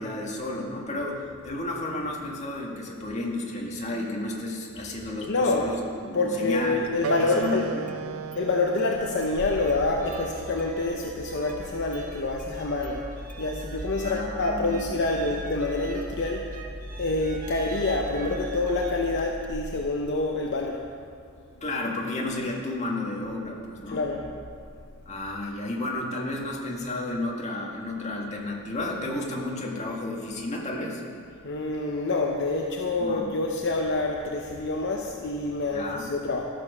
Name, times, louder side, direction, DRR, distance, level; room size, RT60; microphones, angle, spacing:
voice 1, 0.0-7.9 14.0-14.9 21.6-24.1 25.1-31.0 33.0-33.3 35.7-36.1, left 2 dB, 35° left, -2 dB, 1.7 m, -32 dB
voice 2, 5.3-5.7 6.1-7.7 8.4-13.0 13.4-16.5 17.0-20.8 23.9-24.3 31.4-36.4, left 2 dB, 60° left, 0 dB, 0.8 m, -27 dB
Engine starting, 6.8-6.9 7.4-8.0 8.3-8.4 8.8-20.7, equal, 5° left, 0.3 m, -40 dB
Wind instrument woodwind instrument, 7.0-12.1, right 8 dB, 85° right, 0.3 m, -38 dB
sound 1, 9.4-18.9, right 2 dB, 40° right, 0.8 m, -42 dB
14.0 x 7.1 x 5.5 m, 2.3 s
head